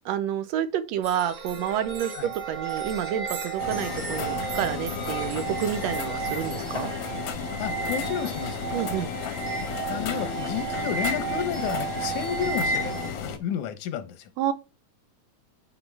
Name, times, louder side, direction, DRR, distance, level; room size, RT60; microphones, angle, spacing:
voice 1, 0.0-6.9 8.7-9.1 14.4-14.5, right 10 dB, 80° right, 1.7 m, -29 dB
sound 1, 1.0-13.1, right 5 dB, 40° right, 2.0 m, -33 dB
sound 2, 3.6-13.4, left 7 dB, 60° left, 1.3 m, -34 dB
voice 2, 7.6-8.6 9.9-14.3, left 9 dB, 90° left, 2.4 m, -31 dB
9.7 x 4.0 x 3.4 m
omnidirectional pair, 3.3 m